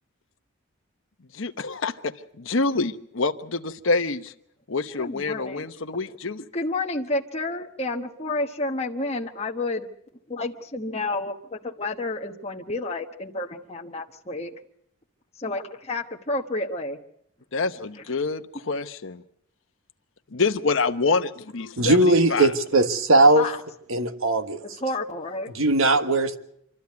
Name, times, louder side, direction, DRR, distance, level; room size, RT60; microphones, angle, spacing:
voice 1, 1.3-4.3 4.7-6.5 17.5-19.2 20.3-22.5, left 3 dB, 60° left, 0.9 m, -27 dB
voice 2, 5.0-5.7 6.5-9.9 10.3-14.5 15.4-17.0 23.3-23.6 24.8-25.5, left 2 dB, 30° left, 1.2 m, -30 dB
voice 3, 21.8-23.5 23.9-24.6 25.5-26.4, right 2 dB, 70° right, 1.6 m, -19 dB
26.5 x 13.0 x 9.6 m
head